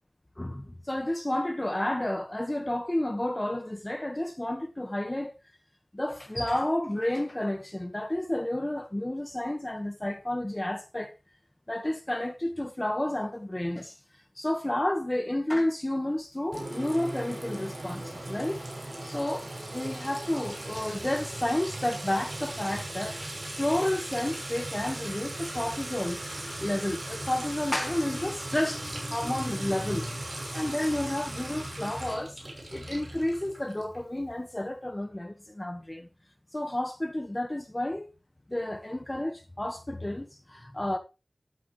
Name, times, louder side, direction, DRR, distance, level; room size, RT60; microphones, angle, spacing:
voice 1, 0.4-5.3 5.9-11.1 11.7-14.0 14.4-18.6 19.0-19.5 19.7-23.2 23.5-32.4 32.7-36.1 36.5-38.1 38.5-41.0, left 1 dB, 20° left, 1.4 m, -31 dB
Sink (filling or washing) / Trickle dribble / Fill (with liquid), 16.5-34.0, right 1 dB, 40° right, 6.3 m, -38 dB
13.5 x 11.5 x 3.2 m
wide cardioid pair, 75°, 0 cm